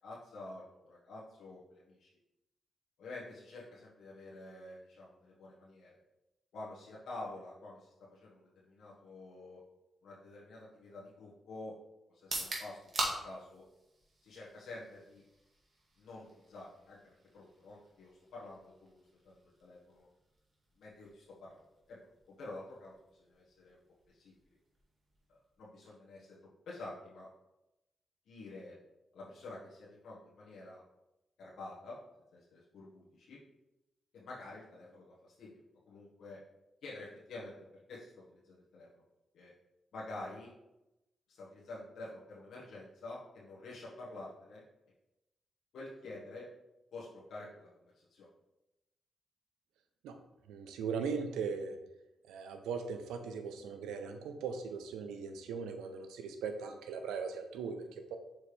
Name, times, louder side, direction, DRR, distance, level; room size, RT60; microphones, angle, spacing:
voice 1, 0.0-2.1 3.0-6.0 6.5-9.6 10.0-11.7 12.1-13.6 14.2-15.2 16.0-20.1 20.8-22.0 22.3-23.8 24.1-24.3 25.3-26.4 26.6-27.3 28.3-28.8 29.1-30.8 31.4-32.0 32.3-33.4 34.1-35.6 35.9-36.4 36.8-39.0 39.3-39.5 39.9-40.5 41.3-44.6 45.7-46.5 46.9-48.3, left 2 dB, 75° left, -7 dB, 1.5 m, -49 dB
sound 1, 12.1-26.0, right 2 dB, 50° right, 1.8 m, -46 dB
voice 2, 50.5-51.8 52.3-58.2, right 5 dB, 90° right, 6 dB, 0.6 m, -39 dB
6.6 x 4.5 x 3.4 m, 0.95 s
supercardioid pair, 55°, 0 cm